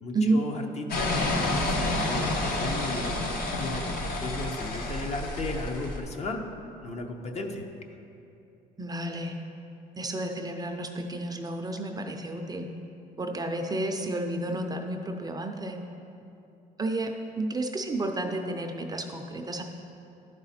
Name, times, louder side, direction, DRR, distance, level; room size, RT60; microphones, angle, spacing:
voice 1, 0.0-6.4 6.8-7.6, left 3 dB, 40° left, 3 dB, 0.8 m, -35 dB
sound 1, 0.9-6.0, left 2 dB, 60° left, 1.2 m, -29 dB
voice 2, 8.8-9.3 10.0-12.7 13.2-15.8 16.8-19.6, right 2 dB, 20° right, 4 dB, 0.5 m, -31 dB
11.5 x 4.8 x 4.2 m, 2.8 s
cardioid pair, 110°, 17 cm